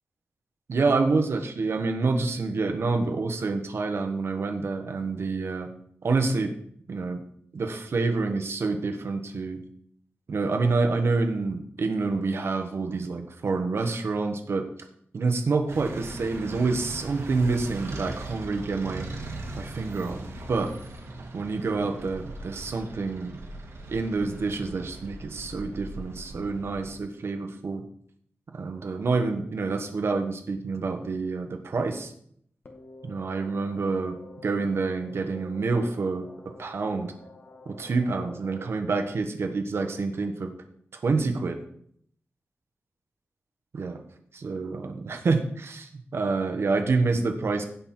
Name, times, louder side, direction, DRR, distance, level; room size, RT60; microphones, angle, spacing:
voice 1, 0.7-5.7 6.0-6.5 6.9-7.2 7.5-9.6 10.3-14.7 15.1-19.1 19.6-20.7 21.3-23.4 23.9-27.8 28.5-32.1 33.0-34.2 34.4-36.3 36.6-37.1 37.6-40.5 41.0-41.6 43.7-44.0 44.3-47.6, right 3 dB, 65° right, 5 dB, 1.3 m, -27 dB
sound 1, 15.7-27.0, right 2 dB, 80° right, 2.1 m, -40 dB
sound 2, 32.6-38.7, left 2 dB, 55° left, 1.8 m, -49 dB
16.0 x 5.6 x 4.5 m, 0.66 s
wide cardioid pair, 155°, 5 cm